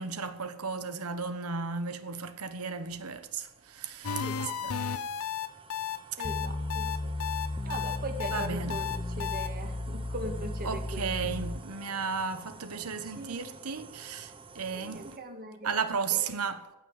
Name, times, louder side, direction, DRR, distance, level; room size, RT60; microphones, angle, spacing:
voice 1, 0.0-4.7 8.3-8.8 10.6-15.1 15.6-16.6, right 5 dB, 90° right, 1.2 m, -34 dB
sound 1, 2.2-15.2, right 4 dB, 25° right, 0.9 m, -52 dB
sound 2, 4.0-9.5, left 8 dB, 85° left, 0.8 m, -33 dB
voice 2, 4.2-4.6 6.2-7.1 7.6-11.0 13.0-13.5 14.7-16.2, right 2 dB, 45° right, 2.0 m, -41 dB
sound 3, 6.2-11.6, left 2 dB, 20° left, 0.5 m, -35 dB
16.0 x 6.1 x 9.1 m
head